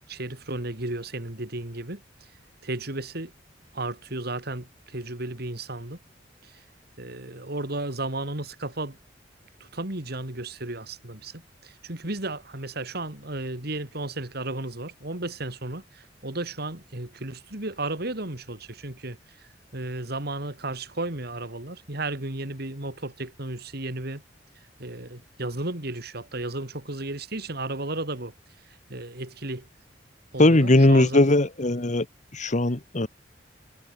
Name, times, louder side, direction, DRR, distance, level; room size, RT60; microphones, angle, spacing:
voice 1, 0.1-2.0 2.6-3.3 3.7-6.0 6.4-6.5 7.0-9.0 9.6-19.2 19.7-24.2 24.8-28.3 28.9-29.7 30.3-31.2, right 2 dB, 60° right, 3.5 m, -34 dB
voice 2, 30.4-32.0 32.3-33.1, left 1 dB, 40° left, 1.5 m, -19 dB
head